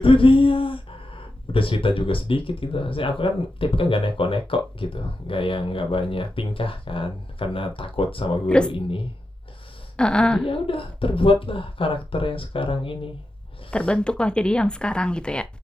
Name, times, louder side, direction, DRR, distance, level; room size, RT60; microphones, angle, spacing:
voice 1, 0.0-9.1 9.6-9.8 10.2-13.2 13.6-13.9, left 2 dB, 90° left, 0.8 m, -23 dB
voice 2, 10.0-10.4 13.7-15.4, left 1 dB, 10° left, 0.4 m, -21 dB
3.8 x 3.3 x 2.6 m
wide cardioid pair, 45°, 9 cm